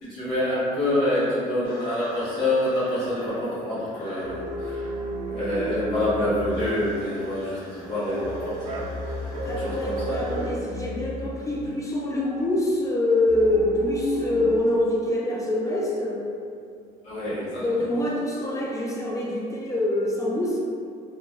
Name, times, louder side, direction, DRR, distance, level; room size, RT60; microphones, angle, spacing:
voice 1, 0.0-9.2 9.4-10.3 17.0-17.6, left 1 dB, 70° left, -11 dB, 1.5 m, -27 dB
sound 1, 1.6-10.5, equal, 55° left, 1.0 m, -44 dB
sound 2, 4.2-6.9 7.9-11.7 13.3-14.6, right 1 dB, 40° right, 0.4 m, -32 dB
voice 2, 9.4-16.3 17.6-20.6, left 1 dB, 20° left, -3 dB, 0.4 m, -25 dB
3.0 x 2.1 x 2.3 m, 2.4 s
cardioid pair, 110°, 17 cm